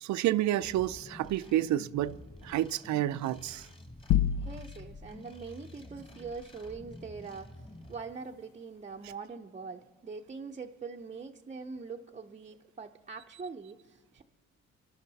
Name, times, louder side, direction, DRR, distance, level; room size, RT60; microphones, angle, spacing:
voice 1, 0.0-2.2 2.4-3.7, right 13 dB, 70° right, 0.5 m, -29 dB
sound 1, 0.6-8.0, left 1 dB, 15° left, 1.6 m, -50 dB
sound 2, 4.1-5.1, left 10 dB, 80° left, 0.5 m, -27 dB
voice 2, 4.4-14.2, right 4 dB, 25° right, 0.6 m, -43 dB
25.0 x 12.0 x 4.0 m
cardioid pair, 90°, 30 cm